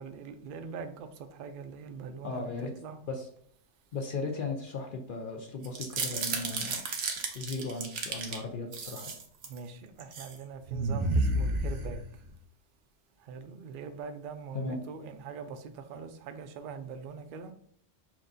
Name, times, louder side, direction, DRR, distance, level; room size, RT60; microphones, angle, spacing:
voice 1, 0.0-3.0 9.5-12.0 13.2-17.5, right 5 dB, 60° right, 7 dB, 0.6 m, -43 dB
voice 2, 2.2-2.7 3.1-3.3 3.9-6.8 7.3-9.1 14.5-14.8, left 3 dB, 60° left, 2 dB, 0.6 m, -36 dB
sound 1, 5.6-8.4 8.7-9.6 10.0-10.3 10.7-12.3, right 2 dB, 85° right, 1.0 m, -31 dB
5.9 x 2.6 x 2.6 m, 0.64 s
omnidirectional pair, 1.2 m